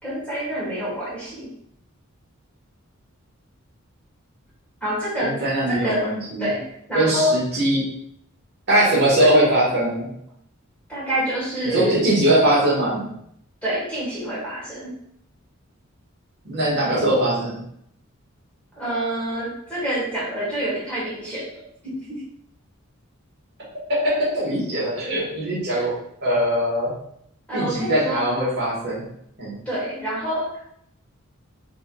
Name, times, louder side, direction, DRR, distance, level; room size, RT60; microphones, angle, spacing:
voice 1, 0.0-1.5 4.8-6.1 6.4-7.4 9.2-9.3 10.9-12.0 13.6-15.0 18.7-21.5 21.8-22.2 25.7-25.9 27.5-28.2 29.7-30.8, equal, 5° left, -8 dB, 1.2 m, -27 dB
voice 2, 5.2-6.5 6.9-7.8 8.7-10.1 11.6-13.0 16.4-17.6 24.0-25.9 26.2-26.9 27.5-29.0 29.4-29.5, right 1 dB, 50° right, -6 dB, 1.3 m, -21 dB
4.4 x 2.9 x 2.2 m, 0.70 s
head